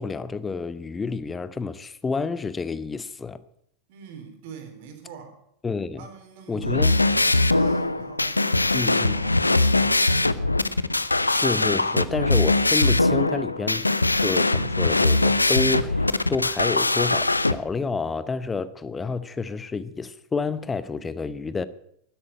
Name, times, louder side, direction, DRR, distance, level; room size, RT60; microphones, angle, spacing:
voice 1, 0.0-3.4 5.6-6.1 6.5-7.0 8.7-9.2 11.3-13.9 14.2-21.6, left 4 dB, 15° left, 0.8 m, -29 dB
voice 2, 3.9-5.4 6.0-10.6 10.9-11.2, right 7 dB, 50° right, 3.6 m, -44 dB
sound 1, 6.6-17.5, left 2 dB, 85° left, 0.6 m, -21 dB
12.5 x 11.5 x 8.8 m
figure-of-eight pair, 90°, 0 cm